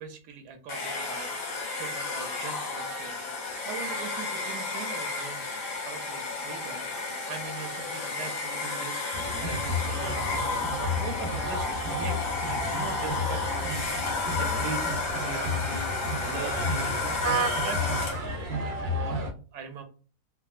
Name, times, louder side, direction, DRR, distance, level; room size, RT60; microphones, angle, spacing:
voice 1, 0.0-3.2 3.6-5.6 5.8-6.9 7.3-9.0 9.4-12.2 12.5-14.1 14.4-15.9 16.2-18.1 18.5-19.8, right 5 dB, 80° right, 6 dB, 1.1 m, -41 dB
Domestic sounds home sounds, 0.7-18.4, left 3 dB, 85° left, 1.5 m, -32 dB
sound 1, 9.1-19.3, left 1 dB, 65° right, 0.6 m, -32 dB
3.6 x 2.2 x 2.4 m, 0.38 s
omnidirectional pair, 1.7 m